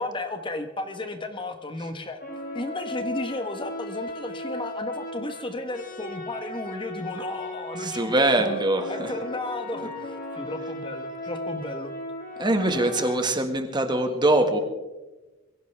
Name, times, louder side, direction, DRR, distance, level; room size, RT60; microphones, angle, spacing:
voice 1, 0.0-2.2 2.5-8.5 8.9-11.9, left 2 dB, 25° left, 7 dB, 1.1 m, -34 dB
sound 1, 2.2-13.2, left 1 dB, 45° left, 2.3 m, -36 dB
voice 2, 7.8-9.1 12.4-14.6, right 1 dB, 20° right, 6 dB, 1.7 m, -23 dB
22.5 x 16.0 x 3.4 m, 1.1 s
head